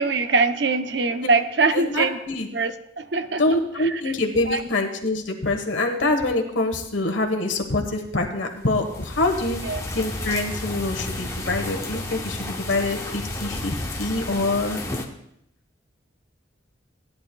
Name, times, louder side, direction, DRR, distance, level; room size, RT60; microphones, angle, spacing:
voice 1, 0.0-2.2 2.5-4.1 4.5-4.6 9.6-9.8, right 3 dB, 60° right, 9 dB, 0.6 m, -23 dB
voice 2, 1.7-2.5 3.4-9.6 9.9-14.8, left 2 dB, 85° left, 4 dB, 1.3 m, -25 dB
sound 1, 8.5-15.1, left 1 dB, 15° left, 0.9 m, -32 dB
17.0 x 10.0 x 2.3 m, 0.76 s
head